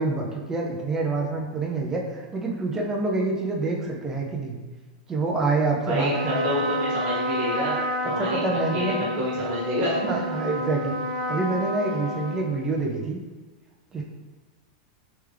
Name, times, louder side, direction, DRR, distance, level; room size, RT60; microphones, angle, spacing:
voice 1, 0.0-4.6 5.1-6.5 8.2-9.0 10.0-10.9 11.3-13.2 13.9-14.0, right 3 dB, 10° right, -1 dB, 0.4 m, -27 dB
voice 2, 5.8-8.4 8.7-10.2, equal, 25° right, -7 dB, 1.3 m, -28 dB
Trumpet, 6.0-12.9, equal, 70° right, 0.7 m, -30 dB
3.5 x 3.2 x 3.2 m, 1.3 s
supercardioid pair, 175°, 4 cm